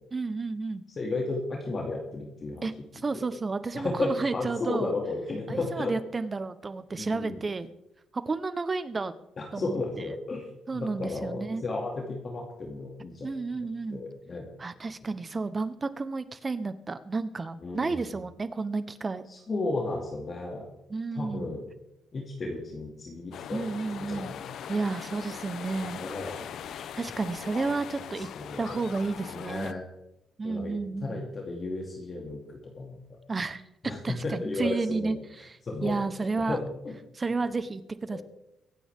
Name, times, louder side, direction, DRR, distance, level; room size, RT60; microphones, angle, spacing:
voice 1, 0.1-0.8 2.6-2.7 3.0-4.9 5.5-7.7 8.1-9.1 9.5-10.0 10.7-11.6 13.2-14.0 14.6-19.3 20.9-21.6 23.5-24.3 24.7-26.0 27.0-28.3 28.6-29.7 30.4-31.2 33.3-33.6 34.0-35.2 35.4-36.6 37.1-38.2, right 3 dB, 30° right, 12 dB, 1.0 m, -31 dB
voice 2, 1.0-2.7 3.1-3.2 3.7-5.9 6.9-7.4 9.4-10.4 10.7-14.5 17.6-18.1 19.3-20.7 21.2-21.7 22.1-24.5 26.0-26.8 28.2-28.8 29.3-29.8 30.4-30.8 31.0-33.0 33.8-35.2 35.6-36.1 36.4-37.0 38.1-38.2, left 2 dB, 40° left, 0 dB, 2.5 m, -34 dB
sound 1, 23.3-29.7, left 9 dB, 70° left, 0.7 m, -40 dB
24.0 x 9.3 x 3.7 m, 0.84 s
cardioid pair, 90°, 0 cm